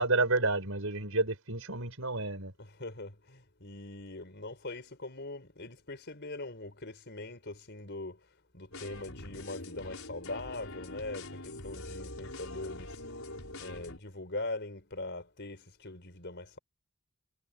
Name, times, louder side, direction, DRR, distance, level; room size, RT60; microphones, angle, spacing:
voice 1, 0.0-2.5, right 2 dB, 65° right, 5.9 m, -30 dB
voice 2, 2.6-8.2 8.5-13.0 13.6-16.6, left 2 dB, 50° left, 4.8 m, -42 dB
sound 1, 8.7-14.0, left 2 dB, 70° left, 5.6 m, -44 dB
head